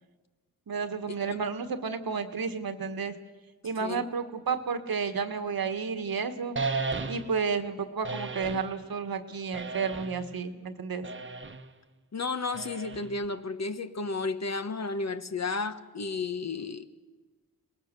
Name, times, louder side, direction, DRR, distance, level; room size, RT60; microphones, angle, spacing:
voice 1, 0.7-3.1 3.6-6.5 7.1-11.1, right 5 dB, 70° right, 9 dB, 1.6 m, -31 dB
sound 1, 6.6-7.5 8.0-8.7 9.5-10.3 11.0-11.7 12.5-13.3, right 3 dB, 30° right, 1.1 m, -34 dB
voice 2, 12.1-16.9, left 3 dB, 45° left, 10 dB, 1.2 m, -33 dB
23.0 x 19.0 x 6.8 m, 1.3 s
cardioid pair, 55°, 37 cm